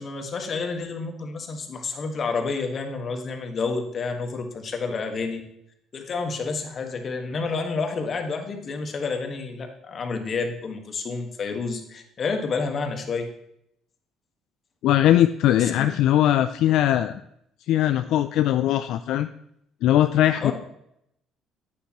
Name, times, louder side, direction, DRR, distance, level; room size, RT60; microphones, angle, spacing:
voice 1, 0.0-5.4 5.9-13.3 15.6-15.9 20.4-20.5, left 4 dB, 45° left, 5 dB, 1.6 m, -29 dB
voice 2, 14.8-17.2 17.7-19.3 19.8-20.5, left 12 dB, 75° left, 10 dB, 0.3 m, -20 dB
10.0 x 8.3 x 3.0 m, 0.76 s
cardioid pair, 85°, 0 cm